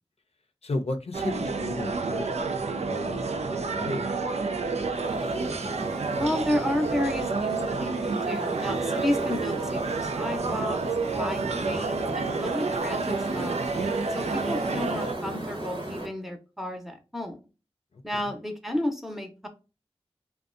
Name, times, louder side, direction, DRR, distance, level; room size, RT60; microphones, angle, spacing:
voice 1, 0.6-4.9 17.9-18.2, left 2 dB, 70° left, 0.5 m, -36 dB
sound 1, 1.1-15.1, right 4 dB, 90° right, 0.4 m, -29 dB
sound 2, 4.9-16.1, right 1 dB, 50° right, 0.8 m, -37 dB
voice 2, 6.1-10.8 11.2-13.6 14.1-17.4 18.0-19.5, left 1 dB, ahead, 0.7 m, -32 dB
2.6 x 2.2 x 2.4 m
wide cardioid pair, 45°, 11 cm